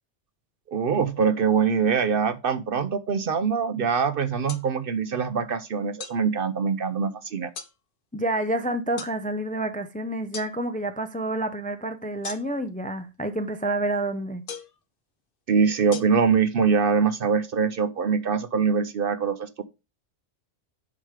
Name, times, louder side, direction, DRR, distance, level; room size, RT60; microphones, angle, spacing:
voice 1, 0.7-7.5 15.5-19.6, right 6 dB, 55° right, 0.8 m, -23 dB
sound 1, 4.5-4.7 6.0-6.2 7.6-7.7 9.0-9.2 10.3-10.5 12.2-12.7 14.5-14.8 15.9-16.0, left 6 dB, 55° left, 1.0 m, -37 dB
voice 2, 8.1-14.4, right 1 dB, 10° left, 0.5 m, -28 dB
7.6 x 5.2 x 4.8 m
omnidirectional pair, 1.2 m